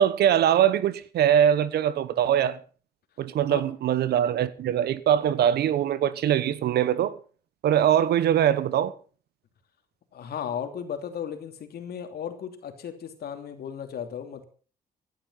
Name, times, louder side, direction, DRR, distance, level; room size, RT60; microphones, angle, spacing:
voice 1, 0.0-2.6 3.2-7.1 7.6-8.9, right 10 dB, 80° right, 1.2 m, -22 dB
voice 2, 10.1-14.4, left 8 dB, 75° left, 3.1 m, -35 dB
16.0 x 11.5 x 5.8 m
cardioid pair, 80°, 16 cm